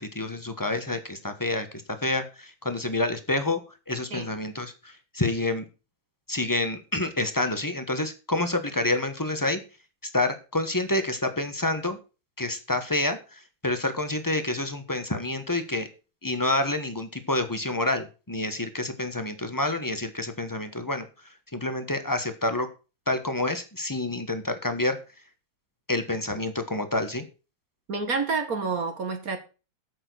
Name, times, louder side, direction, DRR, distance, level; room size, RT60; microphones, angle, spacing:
voice 1, 0.0-1.7 2.0-3.6 3.9-5.7 6.3-9.6 10.1-12.0 12.4-15.9 16.2-21.0 21.5-22.7 23.1-25.0 25.9-27.2, left 2 dB, 15° left, 0.8 m, -28 dB
voice 2, 27.9-29.4, right 4 dB, 50° right, 1.6 m, -28 dB
8.8 x 6.7 x 6.2 m
omnidirectional pair, 2.3 m